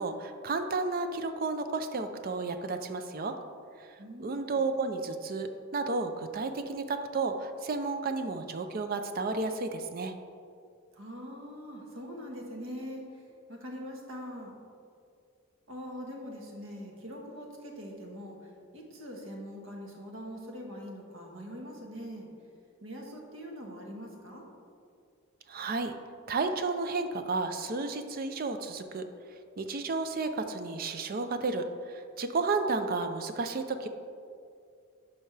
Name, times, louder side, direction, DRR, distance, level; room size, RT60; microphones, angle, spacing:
voice 1, 0.0-3.4 3.8-3.9 4.2-10.1 25.5-25.9 26.3-29.0 29.6-33.9, right 3 dB, 45° right, 8 dB, 0.4 m, -32 dB
voice 2, 4.0-4.6 10.9-14.5 15.7-22.3 22.8-24.5, equal, 70° right, 0 dB, 1.3 m, -43 dB
11.0 x 5.4 x 3.3 m, 2.4 s
head